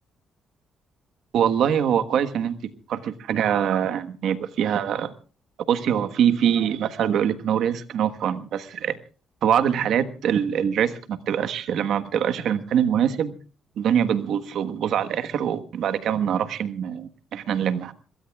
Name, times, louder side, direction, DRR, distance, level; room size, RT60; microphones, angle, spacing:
voice 1, 1.3-5.1 5.7-9.0 9.4-13.4 13.8-17.9, right 9 dB, 75° right, 10 dB, 1.3 m, -24 dB
26.5 x 22.0 x 2.4 m, 0.37 s
cardioid pair, 90°, 0 cm